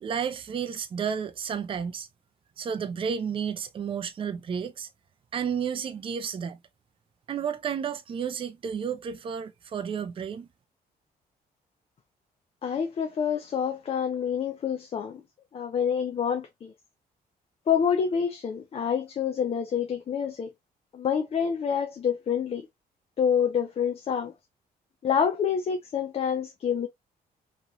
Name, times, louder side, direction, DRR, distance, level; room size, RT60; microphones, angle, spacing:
voice 1, 0.0-2.1 2.6-4.9 5.3-6.6 7.3-10.5, right 7 dB, 35° right, 0.4 m, -32 dB
voice 2, 12.6-15.2 15.5-16.7 17.7-20.5 20.9-22.7 23.2-24.3 25.0-26.9, left 7 dB, 40° left, 0.5 m, -27 dB
3.0 x 2.9 x 2.5 m
cardioid pair, 145°, 16 cm